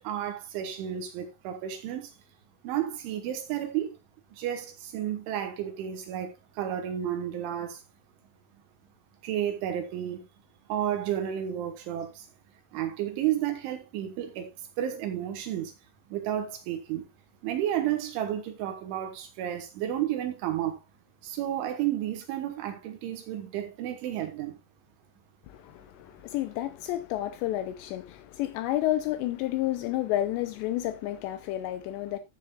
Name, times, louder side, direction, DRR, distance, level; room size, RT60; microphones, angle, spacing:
voice 1, 0.0-2.1 2.6-4.0 4.3-7.8 9.2-10.2 10.7-12.3 12.7-15.7 16.1-17.1 17.4-20.8 21.2-24.6, right 11 dB, 75° right, 3.5 m, -32 dB
voice 2, 25.5-32.2, left 14 dB, 90° left, 2.5 m, -30 dB
14.5 x 7.4 x 2.4 m
omnidirectional pair, 5.8 m